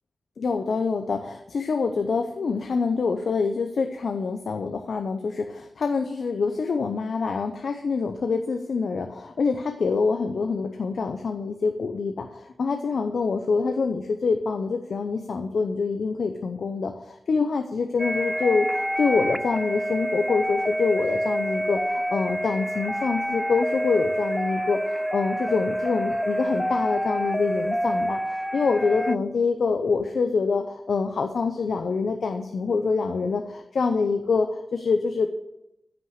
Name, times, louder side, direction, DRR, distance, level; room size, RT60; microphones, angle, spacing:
voice 1, 0.4-21.8 22.1-24.8 25.1-35.3, left 4 dB, 75° left, 5 dB, 0.7 m, -26 dB
sound 1, 18.0-29.2, equal, ahead, 0.4 m, -27 dB
9.5 x 6.1 x 8.0 m, 0.88 s
cardioid pair, 75°, 0 cm